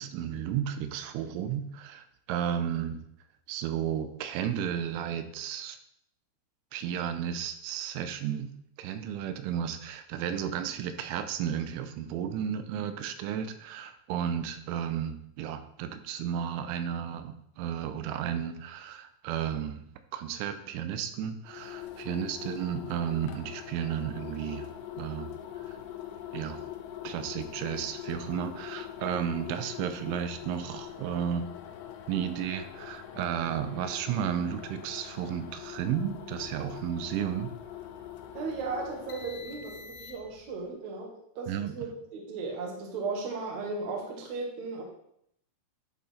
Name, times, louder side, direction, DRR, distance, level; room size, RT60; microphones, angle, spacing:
voice 1, 0.0-3.0 3.5-5.8 6.7-8.5 8.8-19.8 20.1-24.7 25.0-25.3 25.6-25.8 26.3-26.6 27.0-31.5 32.1-37.5 41.5-41.7, right 9 dB, 90° right, 9 dB, 3.1 m, -33 dB
sound 1, 21.5-40.5, left 11 dB, 85° left, 3.1 m, -43 dB
voice 2, 38.3-44.8, right 4 dB, 65° right, 0 dB, 1.9 m, -36 dB
11.0 x 3.8 x 4.2 m, 0.72 s
omnidirectional pair, 5.4 m